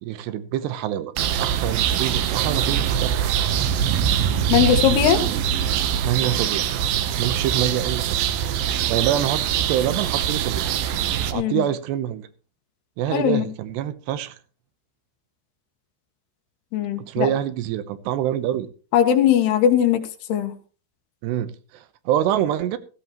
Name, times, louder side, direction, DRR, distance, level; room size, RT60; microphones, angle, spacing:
voice 1, 0.0-1.1 1.4-3.3 6.0-6.7 7.2-8.2 8.9-9.4 9.7-10.6 11.3-12.3 13.0-14.4 17.0-18.7 21.2-22.8, right 11 dB, 85° right, 3.1 m, -25 dB
sound 1, 1.2-11.3, right 9 dB, 70° right, 2.5 m, -23 dB
voice 2, 4.5-5.2 11.3-11.7 13.1-13.5 16.7-17.3 18.9-20.0 20.3-20.5, left 10 dB, 80° left, 3.4 m, -19 dB
16.5 x 14.5 x 3.0 m
omnidirectional pair, 4.7 m